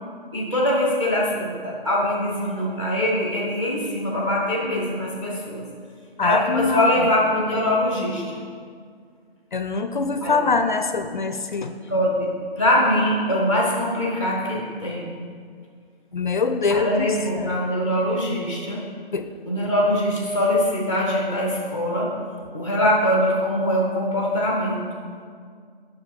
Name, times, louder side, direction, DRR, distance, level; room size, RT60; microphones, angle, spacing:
voice 1, 0.3-5.6 6.2-8.4 10.2-10.3 11.9-12.3 12.6-15.1 16.7-18.8 19.5-22.1 22.5-24.8, left 1 dB, 5° right, -3 dB, 0.6 m, -23 dB
voice 2, 6.2-6.9 9.5-11.7 16.1-17.1 17.4-17.6 19.1-19.3, left 4 dB, 50° left, 8 dB, 0.5 m, -23 dB
7.5 x 6.0 x 4.7 m, 2.1 s
figure-of-eight pair, 150°, 30 cm